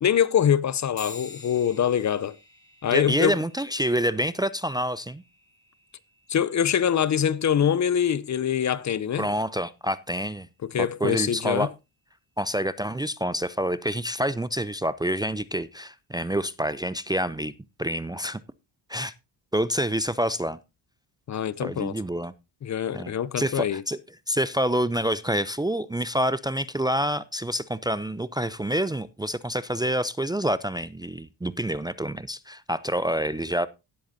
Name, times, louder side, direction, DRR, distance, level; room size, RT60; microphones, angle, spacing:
voice 1, 0.0-2.3 2.8-3.4 6.3-9.3 10.6-11.7 21.3-22.0 22.6-23.8, left 9 dB, 40° left, 0.6 m, -24 dB
sound 1, 1.0-10.8, left 4 dB, 25° left, 5.5 m, -50 dB
voice 2, 2.9-5.2 9.2-10.5 10.8-11.7 12.4-17.5 17.8-18.4 18.9-19.1 19.5-20.6 21.6-22.3 22.9-24.0 24.3-33.7, equal, 10° right, 0.5 m, -27 dB
17.5 x 7.8 x 2.7 m
cardioid pair, 85°, 43 cm